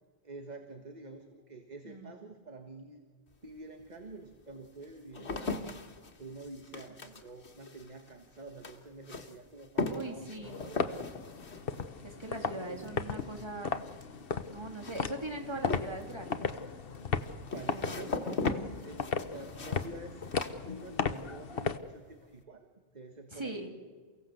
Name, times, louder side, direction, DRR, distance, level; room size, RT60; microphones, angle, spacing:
voice 1, 0.2-3.0 3.4-5.6 6.2-11.0 12.3-13.0 17.5-20.2 20.6-22.7 22.9-23.7, right 2 dB, 40° right, 5 dB, 1.7 m, -48 dB
sound 1, 3.3-3.4 4.1-21.3 21.6-22.1, left 3 dB, 85° left, 1.9 m, -40 dB
voice 2, 9.9-10.6 12.0-13.8 14.5-16.6 17.7-18.2 23.3-23.7, right 2 dB, 25° right, 3 dB, 3.1 m, -41 dB
sound 2, 10.4-21.8, left 5 dB, 60° left, 1.3 m, -36 dB
29.0 x 16.5 x 7.9 m, 1.5 s
omnidirectional pair, 1.1 m